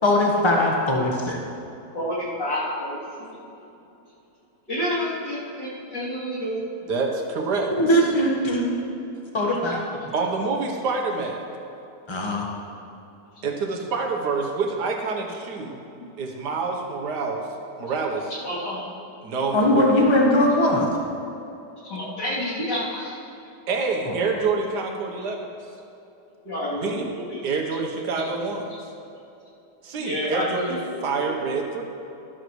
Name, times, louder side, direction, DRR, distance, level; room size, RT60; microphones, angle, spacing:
voice 1, 0.0-1.4 7.8-8.6 9.3-9.8 12.1-12.5 19.5-20.9 24.1-24.2, left 1 dB, 15° left, -1 dB, 1.3 m, -20 dB
voice 2, 1.9-3.4 4.7-6.6 18.4-18.9 21.8-23.1 26.4-27.4 30.0-30.8 31.1-31.3, left 1 dB, 85° left, -9 dB, 3.8 m, -29 dB
voice 3, 6.9-7.7 10.1-11.4 13.4-15.8 16.2-17.4 17.8-18.3 19.2-19.9 23.7-25.5 26.8-27.1 27.4-28.7 29.8-31.8, right 4 dB, 75° right, 2 dB, 1.7 m, -27 dB
13.0 x 12.0 x 3.2 m, 2.8 s
omnidirectional pair, 1.8 m